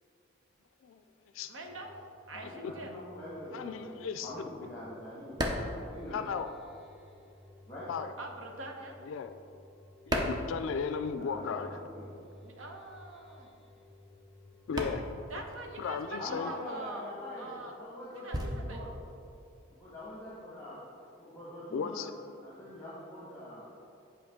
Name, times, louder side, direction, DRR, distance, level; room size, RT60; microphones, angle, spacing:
voice 1, 1.5-2.0 2.3-3.0 8.2-9.0 12.4-13.5 15.3-17.8 18.1-18.8, right 2 dB, 80° right, 2 dB, 0.9 m, -44 dB
sound 1, 1.6-17.1, left 1 dB, ahead, 1.2 m, -56 dB
voice 2, 2.3-6.2 7.7-7.9 11.2-12.1 16.2-18.9 19.7-20.8 21.2-22.1 22.4-23.6, left 1 dB, 15° left, -9 dB, 1.4 m, -44 dB
voice 3, 3.5-4.3 6.1-6.5 7.9-8.1 9.1-9.3 10.1-11.8 14.7-15.1 15.8-16.5 21.7-22.1, left 6 dB, 80° left, 9 dB, 0.3 m, -35 dB
sound 2, 4.6-6.9 7.2-11.3 11.6-20.3, equal, 20° right, 0.5 m, -38 dB
8.5 x 5.2 x 3.6 m, 2.6 s
head